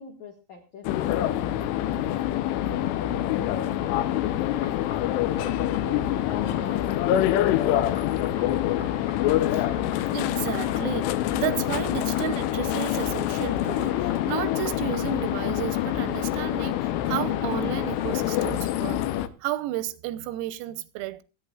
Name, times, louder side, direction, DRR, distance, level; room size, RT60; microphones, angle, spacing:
voice 1, 0.0-2.1 2.6-6.1 6.5-8.9, left 4 dB, 70° left, 1.7 m, -42 dB
sound 1, 0.8-19.3, left 12 dB, 90° left, 2.4 m, -26 dB
sound 2, 4.5-18.6, left 3 dB, 35° left, 1.8 m, -46 dB
voice 2, 10.1-19.0 19.4-21.2, right 14 dB, 90° right, 3.6 m, -32 dB
27.5 x 9.7 x 2.3 m
omnidirectional pair, 5.9 m